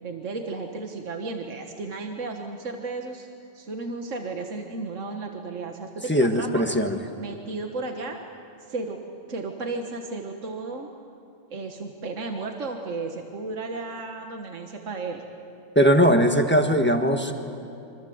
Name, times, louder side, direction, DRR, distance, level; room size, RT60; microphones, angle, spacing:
voice 1, 0.0-3.3 3.5-6.6 7.2-8.2 8.7-9.0 9.3-10.9 11.5-15.2, right 3 dB, 75° right, 3 dB, 1.8 m, -34 dB
voice 2, 6.1-7.0 15.7-17.3, equal, 10° left, 4 dB, 1.4 m, -20 dB
25.5 x 25.0 x 7.8 m, 2.7 s
omnidirectional pair, 1.3 m